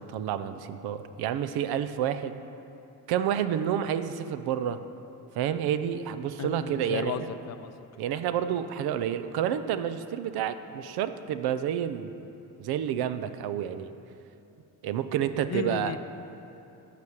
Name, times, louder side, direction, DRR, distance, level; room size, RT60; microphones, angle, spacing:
voice 1, 0.0-2.3 3.1-4.8 5.4-7.3 8.0-12.1 12.6-13.9 14.8-16.0, right 9 dB, 75° right, 11 dB, 0.6 m, -29 dB
voice 2, 6.4-7.7 15.5-16.0, left 9 dB, 45° left, 11 dB, 0.5 m, -34 dB
12.5 x 4.9 x 6.7 m, 2.8 s
cardioid pair, 120°, 38 cm